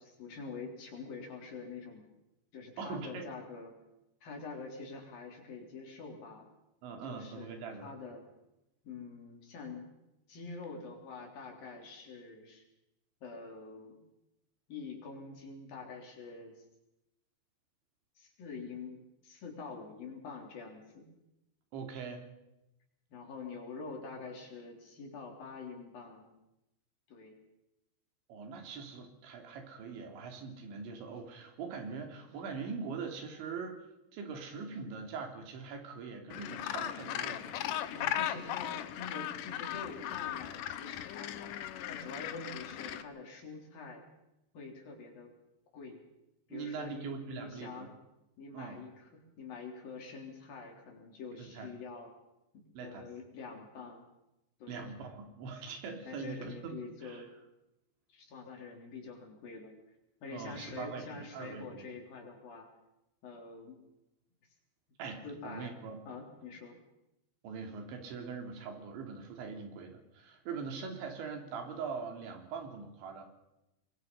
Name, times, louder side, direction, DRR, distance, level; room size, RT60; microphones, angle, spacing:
voice 1, 0.0-2.0 2.5-3.7 4.2-6.5 7.0-8.2 8.8-9.8 10.3-12.6 13.2-14.0 14.7-16.6 18.2-21.0 23.1-26.3 27.1-27.4 37.9-41.5 41.9-44.0 44.5-45.3 45.7-46.0 46.5-47.9 48.4-49.1 49.4-52.1 52.5-54.0 54.6-54.9 56.1-57.3 58.1-59.7 60.2-62.7 63.2-63.8 65.2-66.8, left 4 dB, 55° left, 2 dB, 5.1 m, -46 dB
voice 2, 2.8-3.3 6.8-7.9 21.7-22.2 28.3-33.8 34.1-37.8 46.5-47.9 48.5-48.8 51.4-51.7 52.8-53.1 54.7-56.8 57.0-57.3 60.3-61.9 65.0-66.0 67.4-73.2, right 5 dB, 90° right, 4 dB, 5.3 m, -42 dB
Gull seagull, 36.3-43.0, left 11 dB, 75° left, 1.9 m, -37 dB
25.5 x 21.5 x 5.5 m, 0.91 s
omnidirectional pair, 5.1 m